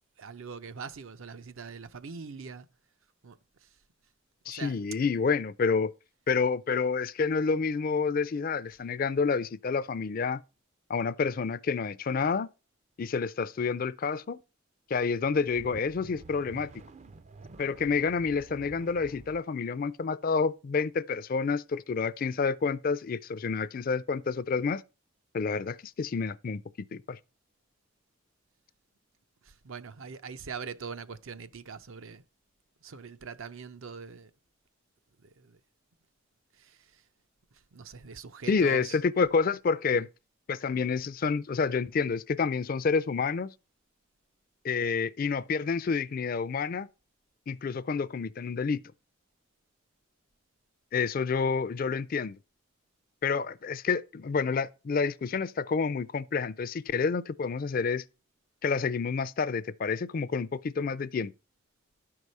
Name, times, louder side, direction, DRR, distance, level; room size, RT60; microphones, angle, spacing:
voice 1, 0.2-2.7 3.2-3.4 4.5-4.8 29.5-32.2 32.8-34.3 35.2-35.6 36.6-36.8 37.7-39.0 39.9-40.1, right 5 dB, 75° right, 0.6 m, -42 dB
voice 2, 4.5-5.9 6.3-10.4 10.9-12.5 13.0-14.4 14.9-16.7 17.6-24.8 25.3-26.6 26.9-27.2 38.5-40.1 40.5-43.5 44.6-46.9 47.5-48.8 50.9-52.4 53.2-58.0 58.6-61.3, left 5 dB, 40° left, 0.4 m, -29 dB
sound 1, 15.2-19.4, right 3 dB, 35° right, 0.4 m, -49 dB
11.5 x 4.8 x 5.4 m
head